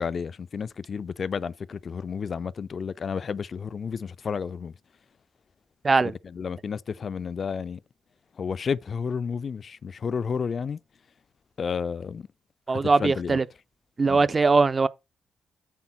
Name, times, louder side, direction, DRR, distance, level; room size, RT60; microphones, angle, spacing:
voice 1, 0.0-4.7 6.2-7.8 8.4-10.8 11.6-12.3 12.7-13.4 14.1-14.2, left 6 dB, 50° left, 0.4 m, -31 dB
voice 2, 12.7-13.4 14.0-14.9, right 4 dB, 35° right, 0.5 m, -21 dB
8.2 x 3.7 x 5.8 m
hypercardioid pair, 40°, 0 cm